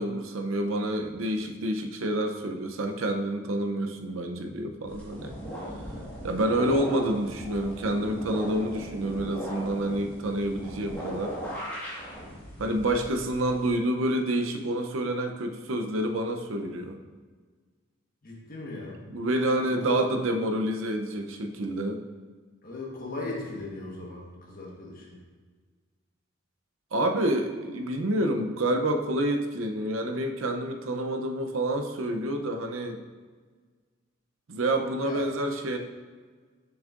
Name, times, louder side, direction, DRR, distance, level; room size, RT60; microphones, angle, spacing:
voice 1, 0.0-5.4 6.2-11.4 12.6-17.0 19.1-22.0 26.9-33.0 34.5-35.8, right 1 dB, 80° right, 5 dB, 0.6 m, -28 dB
sound 1, 4.9-13.7, equal, 10° left, 1.5 m, -38 dB
voice 2, 18.2-19.0 19.8-20.0 22.6-25.2 35.0-35.3, left 3 dB, 45° left, -2 dB, 1.3 m, -37 dB
7.0 x 6.4 x 2.5 m, 1.5 s
head